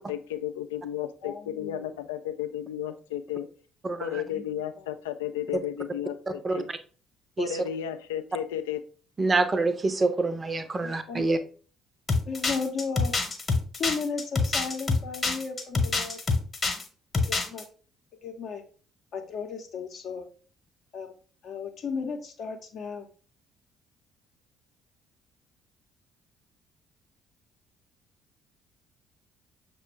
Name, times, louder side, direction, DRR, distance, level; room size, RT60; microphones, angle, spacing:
voice 1, 0.0-3.5 4.0-6.7 7.4-8.8, left 10 dB, 70° left, 9 dB, 0.3 m, -33 dB
voice 2, 1.2-1.9 4.3-4.4 10.8-11.2 12.3-13.1 13.8-16.2 17.3-17.6 18.2-18.6 19.1-20.2 20.9-21.1 21.4-23.1, left 5 dB, 50° left, 3 dB, 0.7 m, -34 dB
voice 3, 3.8-4.2 5.5-5.6 6.3-6.6 7.4-7.7 9.2-11.4, right 3 dB, 25° right, 10 dB, 0.6 m, -26 dB
sound 1, 12.1-16.8 17.1-17.6, left 4 dB, 30° left, 1.0 m, -26 dB
6.4 x 2.2 x 3.2 m, 0.40 s
figure-of-eight pair, 45°, 0 cm